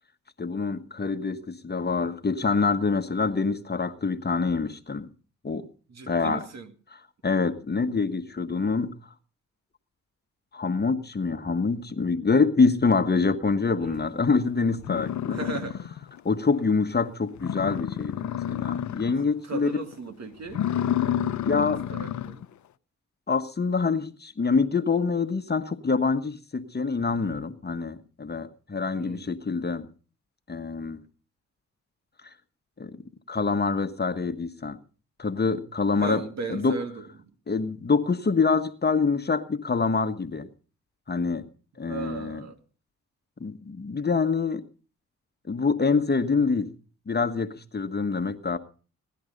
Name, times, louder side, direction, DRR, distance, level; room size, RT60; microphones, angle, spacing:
voice 1, 0.4-5.1 5.4-5.7 6.1-6.4 7.2-8.9 10.5-15.4 16.2-19.7 21.4-21.8 23.3-29.9 30.5-31.0 32.8-32.9 33.3-34.8 35.2-36.2 36.5-36.8 37.5-40.5 41.1-41.4 41.8-42.4 43.4-44.6 45.5-46.7 47.1-48.6, left 4 dB, 30° left, 10 dB, 1.4 m, -25 dB
voice 2, 5.9-6.7 13.8-14.1 15.3-16.0 19.4-20.7 21.6-22.5 28.9-29.4 36.0-37.3 41.9-42.6, right 4 dB, 55° right, 6 dB, 2.4 m, -37 dB
sound 1, 14.3-14.4 14.8-16.2 16.6-16.7 17.1-17.2 17.4-19.3 19.6-19.9 20.4-22.5, left 10 dB, 65° left, 0.7 m, -29 dB
17.5 x 10.5 x 5.3 m, 0.39 s
supercardioid pair, 45°, 31 cm